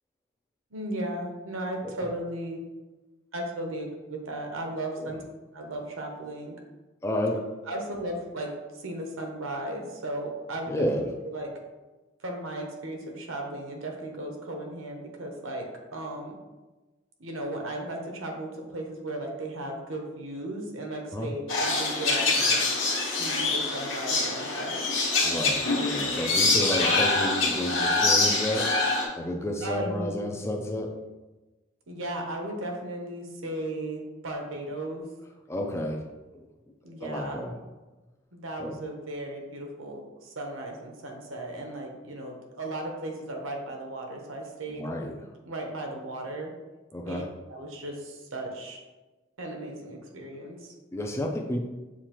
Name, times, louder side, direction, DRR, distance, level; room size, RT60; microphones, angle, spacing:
voice 1, 0.7-2.6 3.3-5.2 5.5-6.5 7.7-8.5 8.8-11.5 12.2-15.7 15.9-16.4 17.2-22.6 23.0-24.8 29.6-30.1 31.9-35.1 36.8-37.4 38.3-44.9 45.5-46.5 47.1-47.2 47.5-48.8 49.4-50.7, right 1 dB, 80° right, 2 dB, 0.9 m, -36 dB
voice 2, 7.0-7.4 7.7-7.8 10.7-11.1 21.1-21.3 25.2-31.0 35.5-36.0 36.3-36.5 37.0-37.5 38.6-38.7 44.7-45.3 46.9-47.3 50.9-51.6, left 1 dB, 15° left, 2 dB, 0.4 m, -31 dB
sound 1, 21.5-29.1, left 3 dB, 70° left, 1.2 m, -25 dB
7.1 x 2.5 x 2.9 m, 1.2 s
head